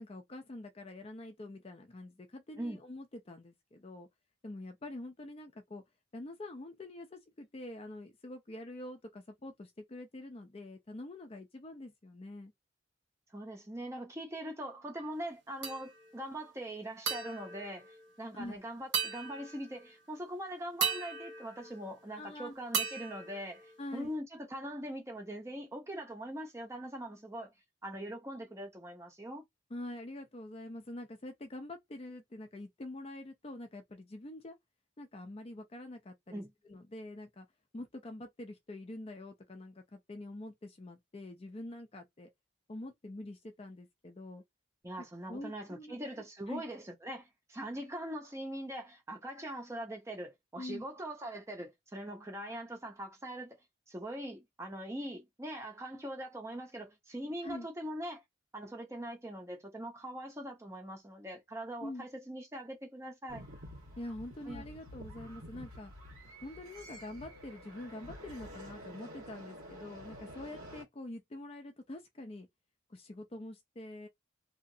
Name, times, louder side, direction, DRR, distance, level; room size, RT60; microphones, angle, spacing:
voice 1, 0.0-4.1 4.4-5.8 6.1-12.5 18.3-18.6 22.2-22.6 23.8-24.1 29.7-34.6 35.0-37.5 37.7-42.3 42.7-44.4 45.0-46.0 46.5-46.6 50.6-50.9 57.4-57.7 61.8-62.1 64.0-65.9 66.4-72.5 72.9-74.1, left 1 dB, 30° left, 0.4 m, -45 dB
voice 2, 13.3-27.5 27.8-29.4 36.3-36.5 44.8-53.6 53.9-58.2 58.5-63.5 64.5-64.7, right 1 dB, 15° right, 0.6 m, -42 dB
sound 1, 15.6-16.2 17.1-18.5 18.9-20.0 20.8-22.3 22.7-24.2, right 6 dB, 60° right, 1.0 m, -38 dB
sound 2, 63.3-70.8, equal, 90° right, 1.4 m, -49 dB
2.8 x 2.4 x 2.6 m
head